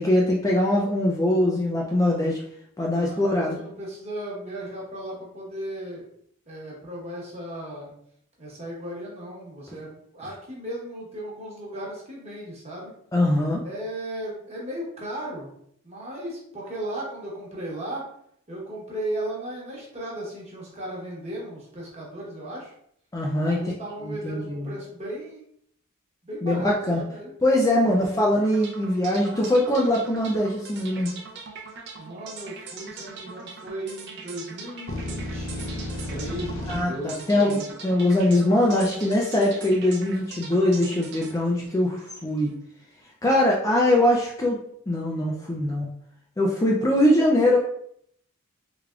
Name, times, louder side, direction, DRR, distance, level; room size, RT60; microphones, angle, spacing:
voice 1, 0.0-2.4 2.8-3.6 13.1-13.6 23.1-23.6 24.1-24.7 26.4-27.0 27.4-31.1 36.7-42.5 43.2-44.6 44.9-45.9 46.4-47.6, left 1 dB, 15° left, -2 dB, 0.3 m, -22 dB
voice 2, 2.9-6.1 6.5-7.9 8.4-12.9 13.6-15.5 15.8-18.0 18.5-22.7 23.4-25.4 26.2-27.3 27.8-28.0 32.0-37.6, right 1 dB, 30° right, -4 dB, 1.0 m, -36 dB
sound 1, 28.4-42.5, right 4 dB, 50° right, 0.5 m, -42 dB
sound 2, 34.9-36.8, left 1 dB, 70° left, 0.5 m, -32 dB
3.4 x 3.3 x 2.4 m, 0.69 s
head